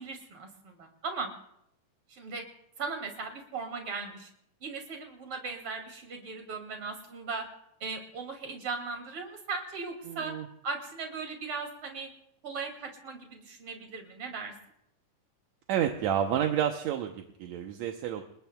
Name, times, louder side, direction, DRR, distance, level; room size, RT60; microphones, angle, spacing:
voice 1, 0.0-1.3 2.1-2.4 2.8-4.3 4.6-7.5 7.8-10.4 10.6-12.1 12.4-14.5, right 4 dB, 45° right, 3 dB, 3.2 m, -38 dB
voice 2, 10.1-10.5 15.7-18.2, right 9 dB, 70° right, 4 dB, 1.9 m, -30 dB
29.0 x 20.0 x 2.3 m, 0.75 s
omnidirectional pair, 3.7 m